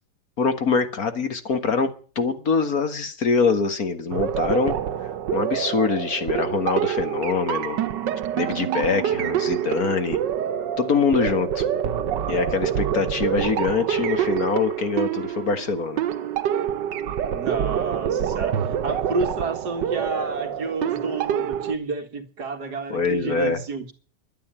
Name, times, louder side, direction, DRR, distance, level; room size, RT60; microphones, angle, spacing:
voice 1, 0.4-7.8 8.4-10.2 10.8-11.7 12.3-16.0 22.9-23.6, left 5 dB, 55° left, 2.1 m, -24 dB
sound 1, 4.1-21.7, right 9 dB, 90° right, 1.6 m, -26 dB
voice 2, 17.3-23.9, right 4 dB, 70° right, 2.4 m, -30 dB
11.5 x 10.0 x 8.8 m
omnidirectional pair, 1.8 m